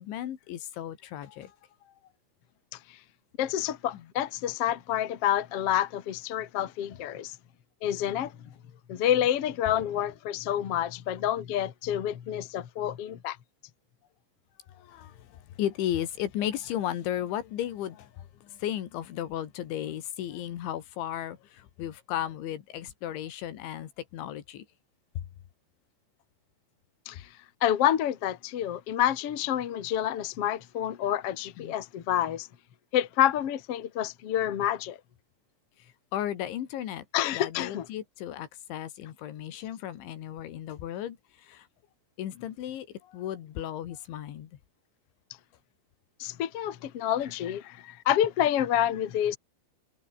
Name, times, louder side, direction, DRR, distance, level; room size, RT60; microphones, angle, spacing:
voice 1, 0.0-1.6 1.8-1.9 3.4-3.5 3.9-4.1 14.7-24.7 25.2-25.3 31.6-31.8 35.8-37.1 37.3-41.7 42.2-44.5, left 11 dB, 80° left, 4.5 m, -35 dB
voice 2, 3.4-7.3 7.8-8.3 8.9-13.4 27.0-27.2 27.6-32.5 32.9-35.0 37.1-37.8 46.2-49.4, left 11 dB, 55° left, 1.7 m, -28 dB
omnidirectional pair, 5.3 m